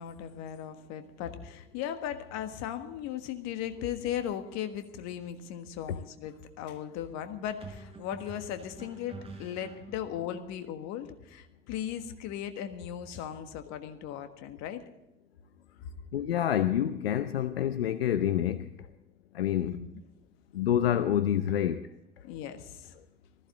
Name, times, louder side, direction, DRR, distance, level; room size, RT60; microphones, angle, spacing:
voice 1, 0.0-14.8 19.6-19.9 22.2-22.9, left 10 dB, 65° left, 8 dB, 1.5 m, -37 dB
sound 1, 4.9-5.2 7.6-10.3, right 4 dB, 20° right, 5.8 m, -47 dB
voice 2, 16.1-18.7 19.3-19.8 20.5-21.9, left 10 dB, 90° left, 13 dB, 0.5 m, -27 dB
19.5 x 14.5 x 3.8 m, 0.92 s
hypercardioid pair, 55°, 29 cm